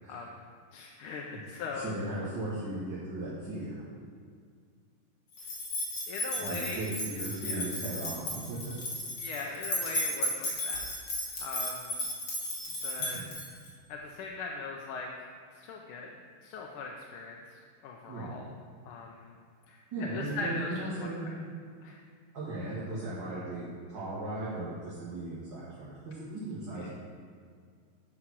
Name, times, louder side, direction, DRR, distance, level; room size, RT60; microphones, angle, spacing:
voice 1, 0.1-0.4 0.7-2.0 6.1-6.8 7.4-7.6 9.2-10.8 11.4-12.0 12.8-13.2 13.9-15.1 15.5-16.1 16.4-17.4 17.8-18.5 18.9-19.3 19.7-20.9 21.8-22.0 26.8-26.9, left 4 dB, 90° left, 0 dB, 1.6 m, -40 dB
voice 2, 1.7-3.8 6.3-8.8 13.0-13.3 18.1-18.4 19.9-21.3 22.3-26.9, right 2 dB, 60° right, -10 dB, 2.2 m, -37 dB
sound 1, 5.4-13.7, left 1 dB, 70° left, 2.5 m, -35 dB
8.6 x 4.9 x 6.0 m, 2.1 s
omnidirectional pair, 2.3 m